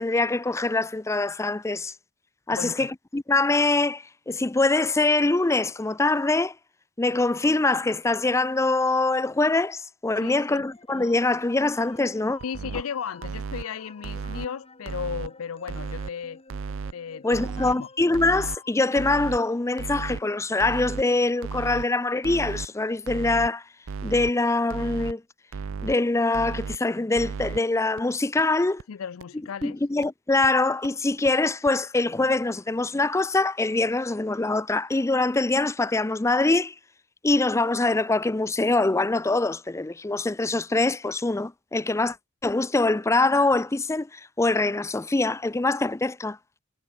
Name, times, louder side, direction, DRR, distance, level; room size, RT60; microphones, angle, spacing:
voice 1, 0.0-1.9 2.5-6.5 7.0-12.4 17.2-23.6 24.0-25.2 25.8-28.8 29.6-36.7 37.2-42.2 42.4-46.4, left 2 dB, 15° left, 0.5 m, -24 dB
voice 2, 2.5-2.9 10.2-10.6 12.4-16.4 16.9-17.9 28.9-29.8, left 7 dB, 80° left, 0.5 m, -35 dB
sound 1, 10.7-19.5, left 3 dB, 30° left, 3.6 m, -50 dB
sound 2, 12.4-12.8 13.2-13.6 14.0-14.5 14.9-15.3 15.7-16.1 16.5-16.9 17.3-17.7 18.1-18.6 19.0-19.4 19.8-20.2 20.6-21.0 21.4-21.8 22.2-22.7 23.1-23.5 23.9-24.3 24.7-25.1 25.5-26.0 26.3-26.8 27.2-27.6 28.0-28.1 28.4-28.5 28.8-28.9 29.2-29.3 29.6-29.7 30.0-30.1 30.4-30.5 30.8-30.9 31.3-31.4 31.7-31.8, right 5 dB, 70° right, 0.5 m, -34 dB
head